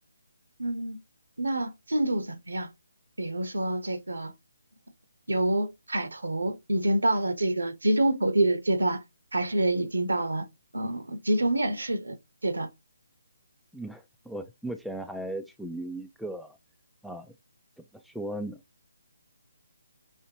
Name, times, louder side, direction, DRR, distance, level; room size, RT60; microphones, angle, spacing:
voice 1, 0.6-1.0 1.4-2.7 3.2-4.3 5.3-9.0 9.3-10.5 10.7-12.2 12.4-12.7, right 1 dB, 80° right, 1.1 m, -27 dB
voice 2, 13.7-16.6 17.0-17.3 17.8-18.6, right 1 dB, ahead, 0.4 m, -37 dB
5.6 x 3.1 x 2.8 m
figure-of-eight pair, 145°, 0 cm